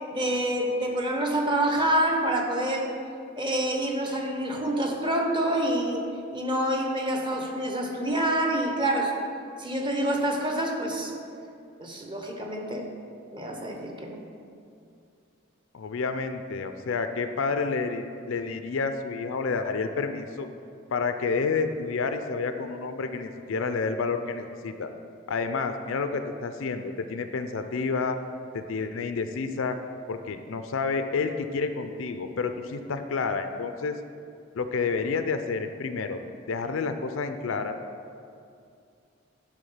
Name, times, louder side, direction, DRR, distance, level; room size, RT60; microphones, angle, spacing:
voice 1, 0.1-2.9 3.3-6.0 6.3-9.1 9.6-11.1 11.8-12.9 13.3-14.2, right 1 dB, 25° right, 1 dB, 0.9 m, -27 dB
voice 2, 15.7-20.5 20.9-24.9 25.3-28.2 28.5-29.8 30.1-34.0 34.5-36.2 36.5-37.8, left 4 dB, 70° left, 8 dB, 0.5 m, -29 dB
10.5 x 3.6 x 5.6 m, 2.4 s
head